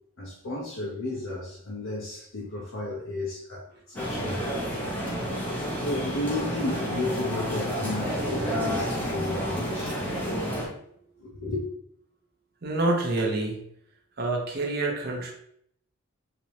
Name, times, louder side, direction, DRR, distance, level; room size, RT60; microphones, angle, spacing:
voice 1, 0.2-4.5 5.8-10.0 11.2-11.6, left 2 dB, 85° left, -5 dB, 0.9 m, -33 dB
sound 1, 4.0-10.7, equal, 10° left, 0.8 m, -30 dB
voice 2, 12.6-13.6 14.2-15.3, right 2 dB, 50° right, 1 dB, 0.7 m, -27 dB
3.4 x 2.9 x 2.9 m, 0.68 s
head